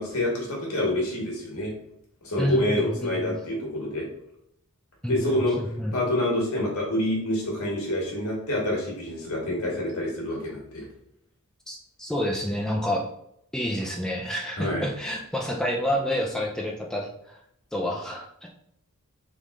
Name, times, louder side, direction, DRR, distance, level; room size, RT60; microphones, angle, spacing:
voice 1, 0.0-1.7 2.2-4.1 5.1-5.6 5.9-10.9 14.6-14.8, left 1 dB, 70° left, -2 dB, 1.6 m, -27 dB
voice 2, 2.4-3.4 5.0-5.4 5.8-6.0 11.7-13.1 13.5-17.4 17.7-18.5, equal, 5° left, -1 dB, 0.4 m, -29 dB
3.7 x 3.6 x 3.2 m, 0.75 s
head